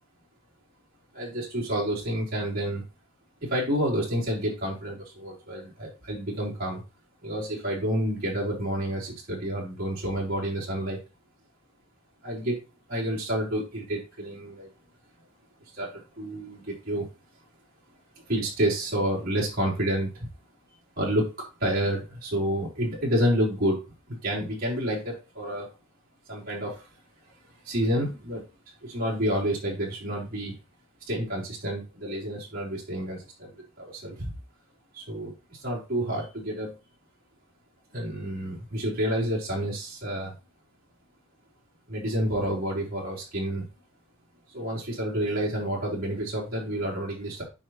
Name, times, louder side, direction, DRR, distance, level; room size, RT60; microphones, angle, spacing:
voice 1, 1.1-2.8 3.4-6.8 7.2-11.0 12.2-12.6 12.9-14.7 15.7-17.0 18.3-20.3 21.0-21.3 21.6-23.8 24.1-25.7 26.3-26.9 27.6-28.4 28.8-30.5 31.1-34.3 34.9-36.7 37.9-40.3 41.9-43.7 44.5-47.4, equal, 45° right, -6 dB, 4.1 m, -29 dB
8.9 x 5.8 x 3.1 m, 0.28 s
head